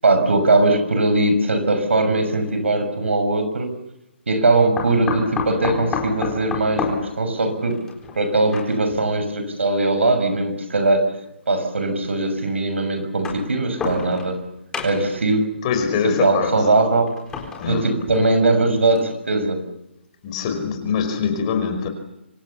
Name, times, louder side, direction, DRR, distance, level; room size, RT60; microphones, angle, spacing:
voice 1, 0.0-3.8 4.3-7.8 8.2-11.1 11.5-14.4 14.8-15.5 16.0-17.1 17.7-19.6, right 2 dB, 85° right, 6.4 m, -20 dB
sound 1, 2.3-2.5 4.8-9.0 10.0-10.1 11.3-11.4 13.0-14.4 14.7-15.2 17.1-18.5 19.0-19.1 19.4-19.5, left 5 dB, 10° left, 4.2 m, -30 dB
voice 2, 15.6-16.7 17.5-18.0 20.2-21.9, left 6 dB, 30° left, 5.0 m, -23 dB
26.0 x 24.5 x 7.2 m
hypercardioid pair, 155°, 6 cm